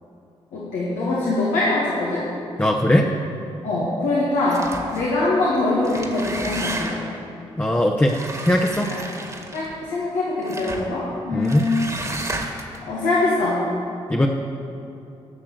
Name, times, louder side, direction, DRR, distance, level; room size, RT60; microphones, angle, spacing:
voice 1, 0.5-2.2 3.6-4.6 4.9-7.1 8.9-9.0 9.5-12.0 12.8-13.6, left 2 dB, 85° left, -7 dB, 1.9 m, -23 dB
voice 2, 2.6-3.1 7.6-8.2 8.4-8.9 11.3-11.7 14.1-14.3, left 1 dB, 15° left, 1 dB, 1.0 m, -19 dB
sound 1, 4.5-5.1 5.7-7.2 8.0-9.8 10.4-10.9 11.4-12.8, right 2 dB, 25° right, 1.8 m, -32 dB
11.5 x 6.1 x 7.8 m, 2.7 s
supercardioid pair, 45°, 13 cm